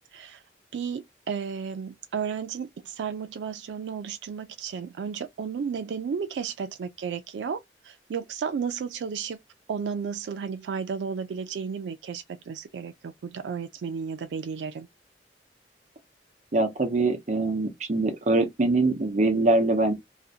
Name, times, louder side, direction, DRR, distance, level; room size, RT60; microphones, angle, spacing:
voice 1, 0.7-9.4 9.7-14.9, right 6 dB, 85° right, 0.3 m, -33 dB
voice 2, 16.5-19.9, right 2 dB, 45° right, 0.6 m, -23 dB
2.5 x 2.1 x 2.6 m
head